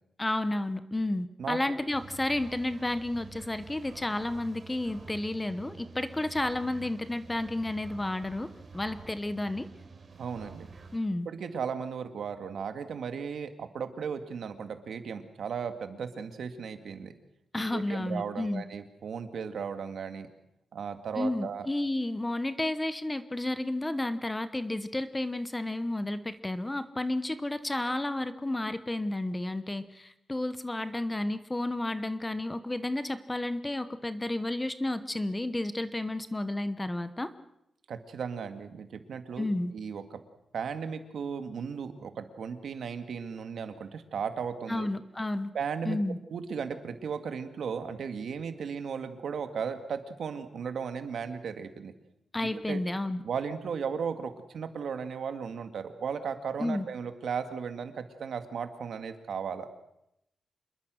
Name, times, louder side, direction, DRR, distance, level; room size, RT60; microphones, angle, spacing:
voice 1, 0.2-8.5 8.7-9.7 10.9-11.3 17.5-18.6 21.2-37.3 39.4-39.7 44.7-45.5 45.9-46.2 52.3-53.2 56.6-56.8, left 1 dB, 10° left, 12 dB, 0.9 m, -31 dB
sound 1, 1.9-11.0, right 4 dB, 40° right, 3.6 m, -49 dB
voice 2, 10.2-10.7 11.3-17.1 17.7-20.3 20.7-21.7 37.9-39.5 39.7-40.2 40.5-44.9 45.5-46.0 46.3-51.9 52.4-52.8 53.2-59.7, right 6 dB, 65° right, 8 dB, 2.1 m, -36 dB
26.5 x 21.5 x 6.4 m, 0.81 s
wide cardioid pair, 170°, 0 cm